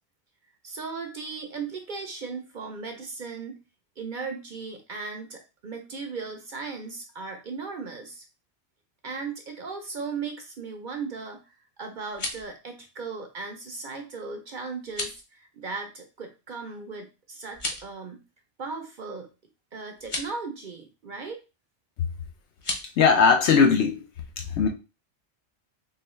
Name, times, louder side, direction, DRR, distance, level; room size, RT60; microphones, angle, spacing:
voice 1, 0.6-3.6 4.0-8.2 9.0-18.2 18.6-19.3 19.7-21.4, right 4 dB, 55° right, 0.6 m, -37 dB
sound 1, 11.9-12.5 14.8-15.2 17.5-17.9 20.0-20.3 22.5-22.9, left 2 dB, 35° left, 0.7 m, -33 dB
voice 2, 23.0-24.0 24.4-24.7, left 5 dB, 75° left, 0.9 m, -19 dB
3.7 x 2.7 x 3.1 m
omnidirectional pair, 1.2 m